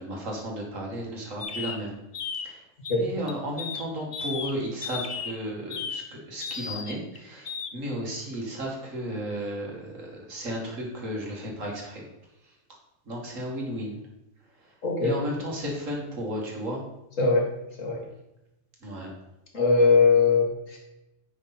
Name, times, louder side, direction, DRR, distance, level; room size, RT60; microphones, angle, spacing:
voice 1, 0.0-1.9 2.4-2.6 3.0-12.0 12.4-12.5 13.1-14.0 14.6-14.7 15.0-16.8 18.8-19.1, equal, 75° right, -1 dB, 2.5 m, -34 dB
sound 1, 1.4-1.8 2.1-2.5 2.8-2.9 3.3-3.8 4.1-4.5 4.8-5.3 5.7-6.0 6.4-7.2 7.4-7.7, left 6 dB, 45° left, 0.6 m, -34 dB
voice 2, 14.8-15.2 17.2-17.5 17.8-18.0 19.5-20.8, left 4 dB, 75° left, -1 dB, 2.4 m, -21 dB
9.9 x 6.1 x 4.2 m, 0.91 s
omnidirectional pair, 1.4 m